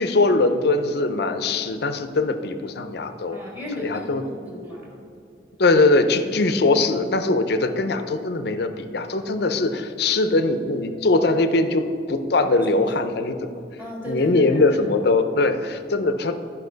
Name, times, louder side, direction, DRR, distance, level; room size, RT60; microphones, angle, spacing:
voice 1, 0.0-3.4 3.8-4.2 5.6-13.4 14.1-16.3, left 2 dB, 60° left, 9 dB, 0.6 m, -21 dB
voice 2, 3.3-4.9 12.4-12.9 13.8-14.8, equal, 10° right, -2 dB, 1.7 m, -35 dB
11.5 x 5.7 x 3.9 m, 2.6 s
head